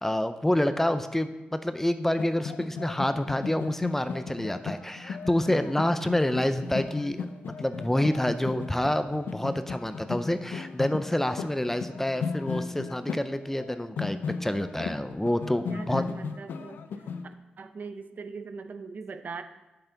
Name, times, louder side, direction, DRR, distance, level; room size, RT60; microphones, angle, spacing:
voice 1, 0.0-7.3 7.6-16.0, left 1 dB, 10° left, 10 dB, 0.5 m, -28 dB
sound 1, 2.0-17.3, left 5 dB, 90° left, 0.5 m, -36 dB
voice 2, 15.7-17.1 17.6-19.4, right 4 dB, 60° right, 8 dB, 0.6 m, -41 dB
7.9 x 6.8 x 3.9 m, 1.0 s
cardioid pair, 70°, 3 cm